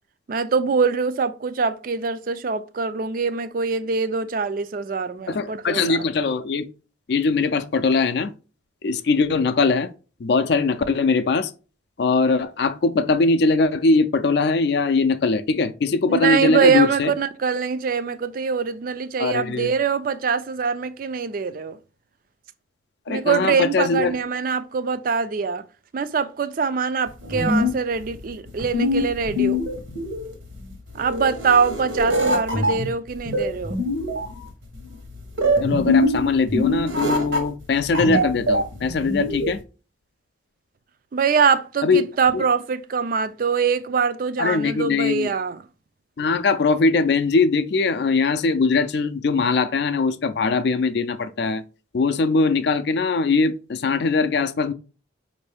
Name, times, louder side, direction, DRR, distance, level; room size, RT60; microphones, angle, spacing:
voice 1, 0.3-6.0 16.1-21.8 23.1-25.6 25.9-29.6 31.0-33.8 41.1-45.6, right 5 dB, 45° right, 0.3 m, -23 dB
voice 2, 5.3-6.7 7.1-8.3 8.8-9.9 10.2-11.5 12.0-17.1 19.2-19.7 23.1-24.1 35.6-39.6 41.8-42.0 42.3-42.4 44.4-45.3 46.2-51.6 51.9-54.7, left 4 dB, 55° left, 0.4 m, -21 dB
sound 1, 27.1-39.6, left 1 dB, 75° right, 1.1 m, -24 dB
5.1 x 2.6 x 3.4 m
head